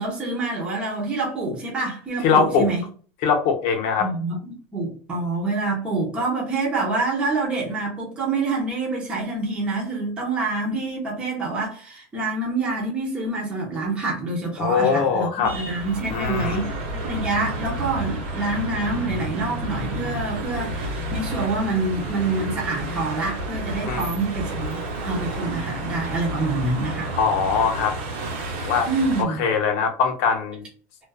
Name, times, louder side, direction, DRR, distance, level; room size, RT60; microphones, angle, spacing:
voice 1, 0.0-2.8 4.0-27.1 28.9-29.4, right 3 dB, 15° right, -3 dB, 0.8 m, -26 dB
voice 2, 2.2-2.7 3.2-4.1 14.6-15.5 16.1-16.7 23.9-24.1 27.2-28.0 28.5-28.9 29.2-30.7, left 6 dB, 60° left, 4 dB, 0.7 m, -22 dB
sound 1, 15.4-29.2, right 1 dB, 70° right, 0.9 m, -30 dB
2.4 x 2.3 x 2.3 m, 0.42 s
cardioid pair, 160°, 7 cm